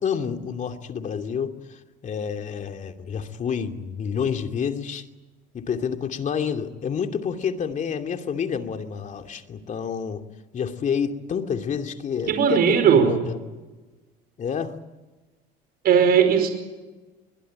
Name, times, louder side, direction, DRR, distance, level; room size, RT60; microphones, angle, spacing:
voice 1, 0.0-5.0 5.5-10.2 10.5-13.4 14.4-14.8, left 7 dB, 40° left, 6 dB, 2.7 m, -29 dB
voice 2, 12.3-13.1 15.8-16.5, right 7 dB, 55° right, 7 dB, 5.0 m, -17 dB
23.0 x 22.0 x 9.0 m, 1.2 s
supercardioid pair, 95°, 19 cm